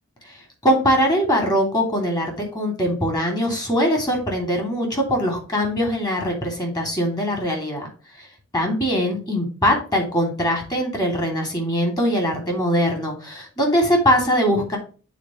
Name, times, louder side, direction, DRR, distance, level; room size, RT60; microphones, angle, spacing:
voice 1, 0.6-7.9 8.5-14.8, equal, 20° left, 2 dB, 2.8 m, -21 dB
9.2 x 4.5 x 3.2 m, 0.36 s
head